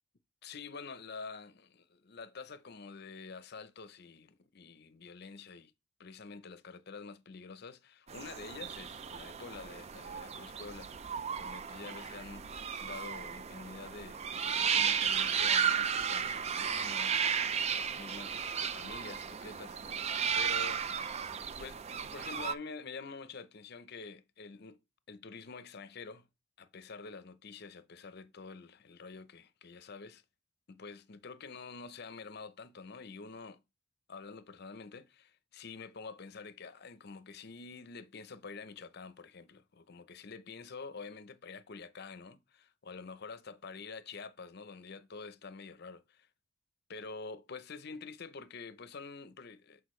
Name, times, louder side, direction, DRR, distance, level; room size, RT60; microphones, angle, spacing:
voice 1, 0.4-5.7 6.0-11.1 11.4-21.2 21.6-24.8 25.1-26.3 26.6-30.2 30.7-33.6 34.1-46.3 46.9-49.8, left 4 dB, 55° left, 0.6 m, -47 dB
sound 1, 8.1-22.5, right 7 dB, 30° right, 0.4 m, -34 dB
8.1 x 4.7 x 3.1 m
head